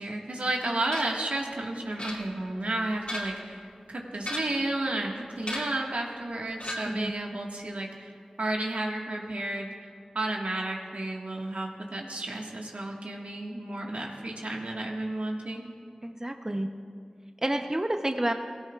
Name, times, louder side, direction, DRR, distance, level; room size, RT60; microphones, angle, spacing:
voice 1, 0.0-8.1 8.4-15.7, right 2 dB, 80° right, 0 dB, 1.6 m, -32 dB
sound 1, 0.9-1.3 2.0-2.6 2.9-3.5 4.2-4.7 5.4-5.9 6.6-7.1, left 1 dB, 55° left, 2.7 m, -36 dB
voice 2, 16.0-16.7 17.4-18.3, right 1 dB, 25° right, 5 dB, 0.7 m, -29 dB
18.5 x 16.5 x 2.4 m, 2.3 s
wide cardioid pair, 40°, 2 cm